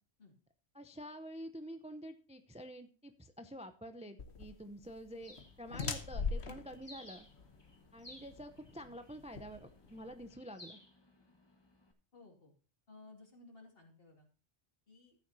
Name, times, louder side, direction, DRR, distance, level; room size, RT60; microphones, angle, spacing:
voice 1, 0.7-7.3 7.9-10.8, equal, 10° right, 9 dB, 0.5 m, -48 dB
sound 1, 4.2-10.3, left 5 dB, 70° left, 1.4 m, -42 dB
Bird, 5.2-11.9, left 1 dB, 20° left, 1.6 m, -58 dB
voice 2, 12.1-12.5 12.9-14.3 14.9-15.2, left 3 dB, 55° left, 1 dB, 2.8 m, -57 dB
14.0 x 9.1 x 2.8 m, 0.36 s
omnidirectional pair, 1.2 m